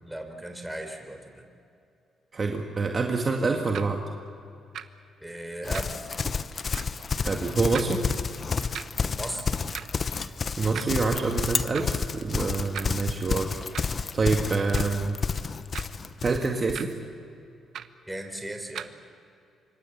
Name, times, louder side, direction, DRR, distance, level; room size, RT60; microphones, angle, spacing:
voice 1, 0.0-1.4 5.2-6.1 9.1-9.5 18.1-18.9, right 1 dB, 5° right, 4 dB, 4.1 m, -36 dB
voice 2, 2.3-4.0 7.2-8.0 10.6-15.2 16.2-16.9, right 4 dB, 35° right, 2 dB, 2.1 m, -27 dB
sound 1, 3.7-3.9 4.7-4.9 5.7-6.0 6.7-6.9 7.7-7.9 8.7-8.9 9.7-9.9 10.7-10.9 11.7-12.0 12.7-12.9 13.7-14.0 14.7-15.0 15.7-16.0 16.7-16.9 17.7-18.0 18.7-18.9, right 9 dB, 70° right, 1.0 m, -37 dB
Livestock farm animals working animals, 5.6-16.8, left 5 dB, 40° left, 0.9 m, -30 dB
26.5 x 24.5 x 7.3 m, 2.5 s
cardioid pair, 100°, 0 cm